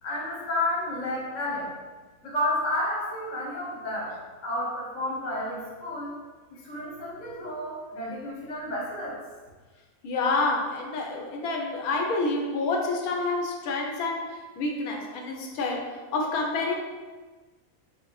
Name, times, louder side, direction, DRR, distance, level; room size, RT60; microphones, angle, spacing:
voice 1, 0.0-1.7 2.2-6.2 6.5-9.2, left 1 dB, 35° left, -4 dB, 0.8 m, -31 dB
voice 2, 10.0-16.8, left 3 dB, 85° left, 1 dB, 1.1 m, -28 dB
4.4 x 2.1 x 3.0 m, 1.3 s
omnidirectional pair, 1.5 m